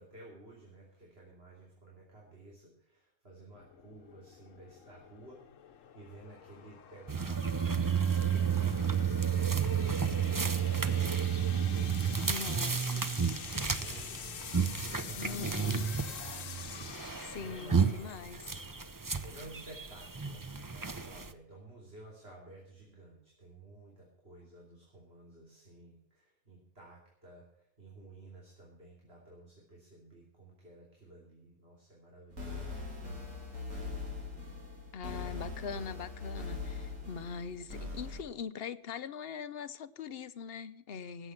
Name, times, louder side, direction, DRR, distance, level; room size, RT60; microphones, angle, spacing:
voice 1, 0.0-7.9 8.1-12.8 13.1-18.2 19.2-33.3, right 2 dB, 50° right, 3.3 m, -54 dB
sound 1, 3.5-18.9, left 9 dB, 80° left, 1.2 m, -48 dB
sound 2, 7.1-21.3, right 7 dB, 25° right, 0.5 m, -32 dB
voice 2, 12.2-13.1 15.2-16.0 17.2-18.6 34.9-41.3, left 6 dB, 55° left, 0.9 m, -42 dB
sound 3, 32.3-38.2, left 3 dB, 80° right, 3.6 m, -41 dB
17.5 x 8.1 x 5.8 m
omnidirectional pair, 1.3 m